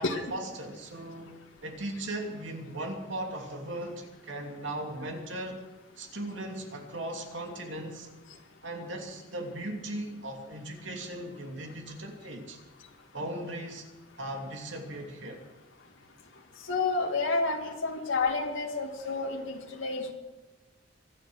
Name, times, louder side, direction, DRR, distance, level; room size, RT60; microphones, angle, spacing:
voice 1, 0.3-5.6 6.0-8.1 8.6-12.6 13.1-13.9 14.2-15.4, right 1 dB, 70° right, 2 dB, 2.8 m, -38 dB
voice 2, 16.7-20.1, left 3 dB, 80° left, 1 dB, 2.1 m, -30 dB
24.5 x 9.1 x 6.5 m, 1.1 s
head